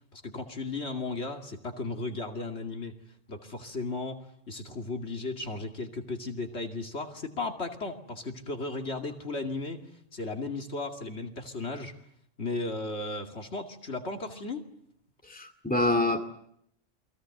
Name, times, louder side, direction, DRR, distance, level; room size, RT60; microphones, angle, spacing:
voice 1, 0.1-3.0 3.3-9.8 10.1-12.0 12.4-14.6, left 3 dB, 60° left, 4 dB, 2.7 m, -35 dB
voice 2, 15.3-16.2, left 2 dB, 5° left, 5 dB, 2.3 m, -26 dB
29.0 x 22.0 x 7.8 m, 0.72 s
omnidirectional pair, 1.3 m